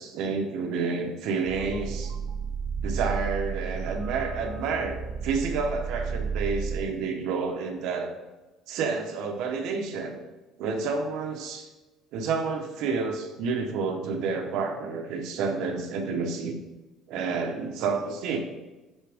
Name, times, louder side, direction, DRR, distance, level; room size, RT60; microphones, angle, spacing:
voice 1, 0.0-2.1 2.8-8.1 8.7-10.2 10.6-11.7 12.1-16.6 17.1-18.4, right 4 dB, 65° right, 4 dB, 1.0 m, -29 dB
sound 1, 1.4-6.8, right 6 dB, 45° right, 0.5 m, -32 dB
9.9 x 3.4 x 3.5 m, 1.1 s
cardioid pair, 155°, 0 cm